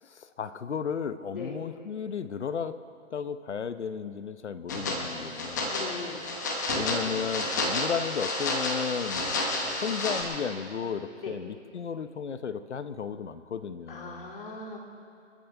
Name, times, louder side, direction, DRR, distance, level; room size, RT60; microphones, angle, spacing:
voice 1, 0.0-2.8 3.1-5.7 6.7-9.3 9.8-14.3, left 6 dB, 65° left, 12 dB, 0.9 m, -34 dB
sound 1, 4.7-10.2, left 2 dB, 15° left, 0.9 m, -30 dB
voice 2, 5.7-6.2 11.2-11.3 13.9-14.8, left 4 dB, 45° left, 0 dB, 2.8 m, -39 dB
29.0 x 10.5 x 3.5 m, 2.4 s
hypercardioid pair, 165°, 38 cm